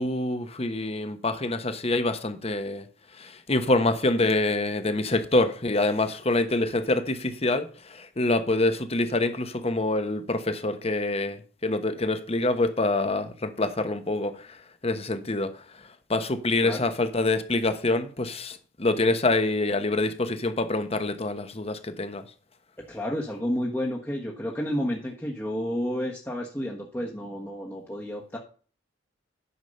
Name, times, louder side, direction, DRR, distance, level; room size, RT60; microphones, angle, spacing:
voice 1, 0.0-2.9 3.1-22.2, left 2 dB, 30° left, 1.0 m, -26 dB
voice 2, 22.9-28.4, equal, 10° left, 1.2 m, -31 dB
9.7 x 6.2 x 5.3 m
head